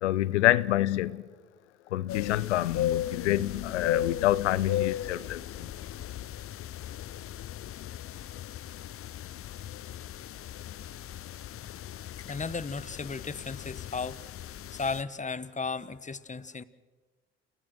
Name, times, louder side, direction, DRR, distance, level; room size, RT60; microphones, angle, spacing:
voice 1, 0.0-1.2 1.9-5.7, left 15 dB, 90° left, 0.7 m, -27 dB
sound 1, 2.1-15.0, left 11 dB, 40° left, 0.6 m, -37 dB
voice 2, 12.2-14.2 14.7-16.6, left 4 dB, 20° left, 1.3 m, -35 dB
29.5 x 17.0 x 6.3 m
hypercardioid pair, 50°, 34 cm